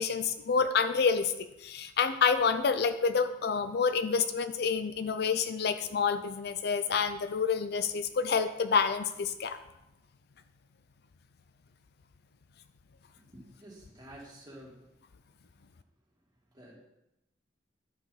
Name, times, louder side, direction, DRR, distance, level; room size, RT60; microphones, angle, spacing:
voice 1, 0.0-9.6, left 5 dB, 60° left, 10 dB, 0.5 m, -28 dB
voice 2, 13.2-14.9 16.5-16.8, right 1 dB, 25° right, -6 dB, 2.5 m, -50 dB
11.0 x 5.0 x 4.1 m, 0.91 s
head